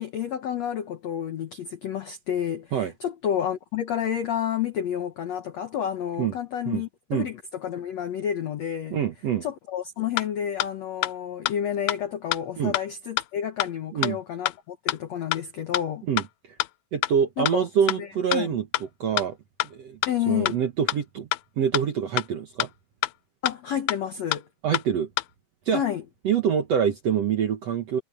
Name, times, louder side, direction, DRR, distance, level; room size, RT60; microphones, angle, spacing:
voice 1, 0.0-9.0 9.4-16.1 17.4-17.7 18.0-18.6 20.1-20.6 23.4-24.5 25.7-26.0, left 9 dB, 75° left, 1.6 m, -30 dB
voice 2, 8.9-9.4 12.6-12.7 13.9-14.2 16.1-16.6 16.9-18.6 19.0-19.4 19.6-20.0 20.3-21.3 21.6-22.7 24.6-25.1 25.6-25.8 26.2-28.0, right 8 dB, 65° right, 1.7 m, -25 dB
sound 1, 10.2-10.3 10.6-10.7 11.0-11.1 11.5-11.6 11.9-12.0 12.3-12.4 12.7-12.8 13.2-13.3 13.6-13.7 14.0-14.1 14.5-14.6 14.9-15.0 15.3-15.4 15.7-15.8 16.2-16.3 16.6-16.7 17.0-17.1 17.5-17.6 17.9-18.0 18.3-18.4 18.7-18.8 19.2-19.3 19.6-19.7 20.0-20.1 20.5-20.6 20.9-21.0 21.3-21.4 21.7-21.8 22.2-22.3 22.6-22.7 23.0-23.1 23.5-23.6 23.9-24.0 24.3-24.4 24.7-24.8 25.2-25.3, left 16 dB, 90° left, 1.8 m, -25 dB
omnidirectional pair, 4.7 m